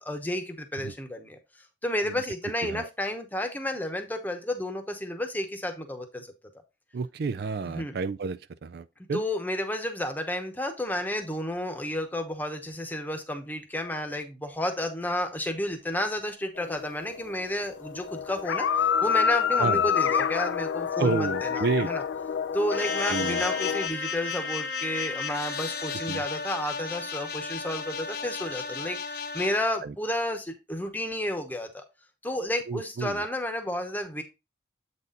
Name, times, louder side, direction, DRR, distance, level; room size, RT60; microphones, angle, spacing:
voice 1, 0.0-1.4 1.8-6.3 7.7-7.9 9.1-22.0 22.5-31.8 32.2-34.2, left 1 dB, 10° left, 1.0 m, -31 dB
voice 2, 6.9-9.2 19.6-19.9 21.0-21.9 23.1-23.4 26.1-26.2 29.8-29.9 32.7-33.2, right 4 dB, 55° right, 0.4 m, -30 dB
sound 1, 16.6-17.4 17.7-23.9, left 7 dB, 75° left, 0.4 m, -28 dB
sound 2, 22.7-29.6, left 5 dB, 55° left, 0.9 m, -33 dB
8.2 x 4.2 x 3.8 m
head